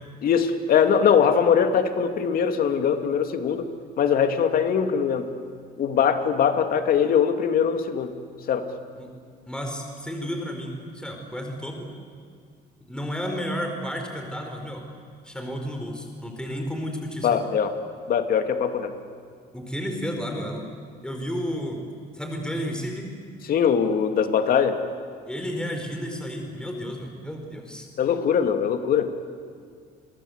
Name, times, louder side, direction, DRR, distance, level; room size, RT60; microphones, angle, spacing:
voice 1, 0.2-3.7 4.0-5.3 5.8-8.1 8.5-8.7 17.2-17.7 18.1-18.9 23.5-24.8 28.0-29.1, left 7 dB, 60° left, 7 dB, 2.5 m, -21 dB
voice 2, 9.5-11.9 12.9-14.8 15.2-17.4 19.5-20.7 21.0-21.8 22.1-23.1 25.3-27.9, equal, 5° left, 3 dB, 4.8 m, -32 dB
30.0 x 24.0 x 8.2 m, 2.1 s
cardioid pair, 110°, 17 cm